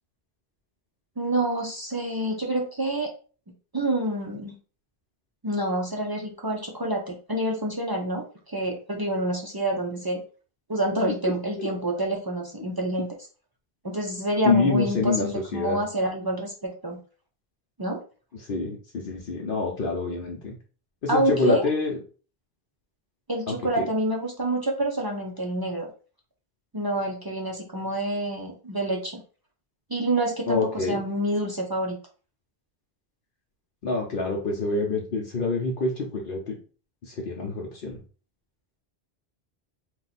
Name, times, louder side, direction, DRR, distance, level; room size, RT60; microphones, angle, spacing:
voice 1, 1.2-3.1 3.7-4.6 5.4-10.2 10.7-13.1 13.8-17.0 17.8-18.0 21.1-21.7 23.3-25.9 26.7-29.2 29.9-32.0, right 1 dB, 40° right, 0 dB, 0.3 m, -27 dB
voice 2, 14.4-15.8 18.4-20.5 21.0-22.0 23.5-23.8 30.5-31.0 33.8-36.6 37.0-38.0, left 3 dB, 60° left, -1 dB, 0.8 m, -26 dB
2.8 x 2.2 x 4.0 m, 0.38 s
omnidirectional pair, 1.1 m